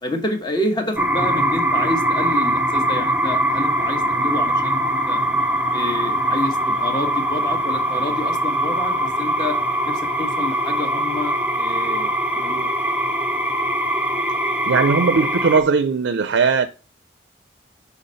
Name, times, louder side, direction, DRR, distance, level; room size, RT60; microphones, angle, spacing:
voice 1, 0.0-5.2 5.7-9.6 9.8-12.7, left 1 dB, 25° left, 1.2 m, -28 dB
sound 1, 1.0-15.6, right 1 dB, 10° right, 0.6 m, -22 dB
voice 2, 14.7-16.7, right 5 dB, 80° right, 0.4 m, -18 dB
5.7 x 4.3 x 5.2 m
head